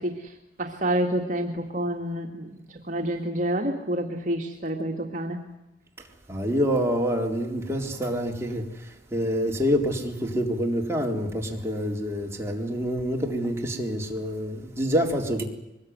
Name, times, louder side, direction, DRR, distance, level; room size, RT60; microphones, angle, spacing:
voice 1, 0.0-5.4, right 1 dB, 45° right, 2.3 m, -29 dB
voice 2, 6.3-15.4, equal, 15° right, 3.9 m, -27 dB
24.0 x 21.0 x 9.6 m
head